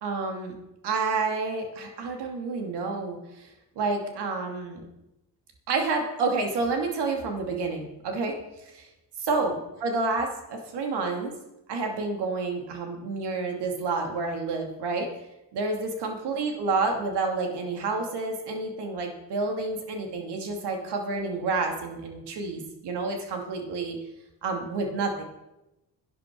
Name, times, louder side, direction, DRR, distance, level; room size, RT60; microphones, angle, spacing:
voice 1, 0.0-0.5 0.8-3.5 3.8-4.9 5.7-8.4 8.7-8.9 9.3-9.5 9.8-11.3 11.7-15.1 15.5-24.0 24.4-25.2, right 3 dB, 80° right, 3 dB, 2.7 m, -29 dB
11.0 x 9.9 x 6.1 m, 0.96 s
cardioid pair, 75°, 40 cm